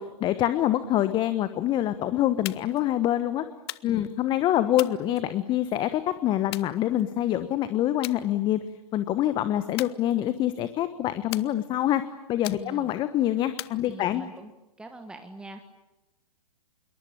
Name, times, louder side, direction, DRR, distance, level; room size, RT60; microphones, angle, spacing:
voice 1, 0.0-3.4 3.8-8.6 8.9-14.2, left 12 dB, 25° left, 12 dB, 1.2 m, -26 dB
sound 1, 2.5-2.9 3.7-4.2 4.8-5.7 6.5-7.3 8.0-8.2 8.6-9.0 9.8-10.6 11.3-11.9 12.4-13.0 13.6-14.4, left 17 dB, 40° left, 0.9 m, -40 dB
voice 2, 12.6-12.9 13.9-14.5 14.8-15.6, right 2 dB, 5° right, 6 dB, 1.7 m, -43 dB
26.5 x 23.0 x 8.8 m, 1.0 s
figure-of-eight pair, 115°, 20 cm